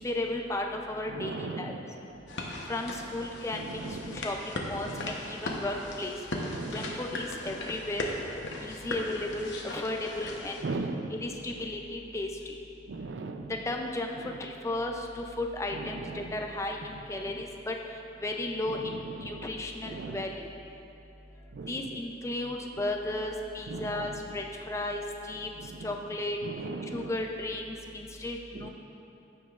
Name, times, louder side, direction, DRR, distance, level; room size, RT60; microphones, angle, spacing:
voice 1, 0.0-1.7 2.7-6.2 6.7-8.1 8.6-10.6 11.1-12.3 13.7-14.1 14.4-17.7 18.2-18.9 19.2-20.5 21.7-25.0 25.3-25.5 25.8-26.4 26.9-28.7, left 2 dB, 15° left, 2 dB, 0.4 m, -34 dB
voice 2, 1.1-1.8 2.1-2.4 3.5-4.2 4.7-5.1 6.3-7.0 10.6-11.7 12.9-13.6 14.2-14.3 15.7-16.4 17.2-17.4 18.6-19.6 19.8-20.3 21.5-21.9 23.7-24.4 25.6-25.9 26.4-27.2 28.5-28.7, right 3 dB, 75° right, 7 dB, 0.4 m, -39 dB
sound 1, 2.3-10.6, left 2 dB, 80° left, 0.9 m, -38 dB
15.0 x 5.1 x 2.4 m, 2.7 s
head